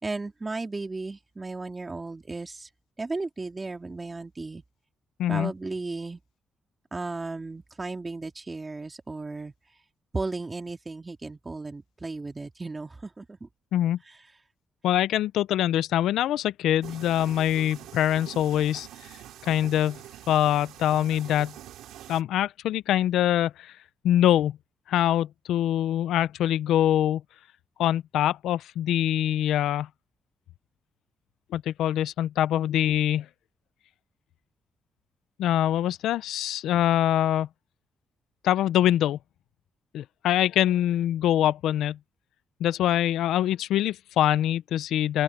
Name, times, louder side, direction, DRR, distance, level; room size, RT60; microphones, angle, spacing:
voice 1, 0.0-2.7 3.0-4.6 5.3-6.2 6.9-9.5 10.1-13.5, right 3 dB, 25° right, 3.6 m, -35 dB
voice 2, 5.2-5.5 13.7-14.0 14.8-18.9 19.5-20.0 20.3-21.5 22.1-23.7 24.0-24.6 24.9-27.2 27.8-29.9 31.5-33.3 35.4-37.5 38.4-39.2 39.9-42.0 42.6-45.2, left 12 dB, 85° left, 0.6 m, -24 dB
sound 1, 16.8-22.2, right 12 dB, 85° right, 2.6 m, -45 dB
open air
supercardioid pair, 65°, 0 cm